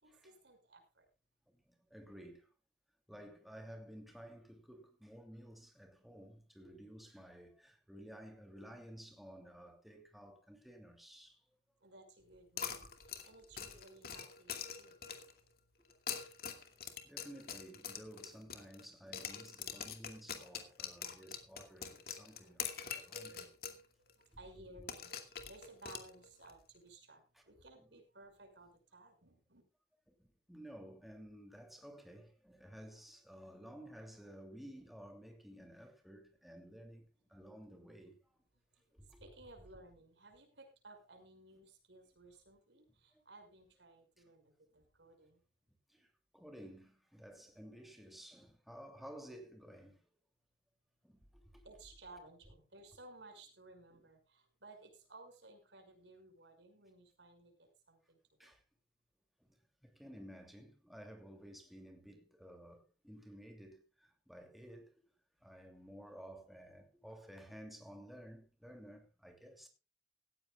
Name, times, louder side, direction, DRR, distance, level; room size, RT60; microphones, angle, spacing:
voice 1, 0.0-1.1 11.8-15.3 24.0-29.6 39.0-45.4 51.6-58.5, right 2 dB, 85° right, 5.9 m, -58 dB
voice 2, 1.5-2.5 3.1-11.4 12.6-12.9 13.3-13.4 16.1-16.3 16.8-23.6 27.3-27.4 27.8-27.9 30.1-38.4 38.8-39.2 43.1-43.2 44.2-44.3 45.9-50.1 51.0-51.6 53.9-54.0 58.4-58.6 59.4-64.9 65.4-69.7, equal, ahead, 2.8 m, -54 dB
sound 1, 12.6-15.4 15.9-18.9 19.1-23.8 24.1-24.2 24.9-26.5, left 7 dB, 55° left, 2.5 m, -44 dB
18.0 x 15.0 x 2.4 m
head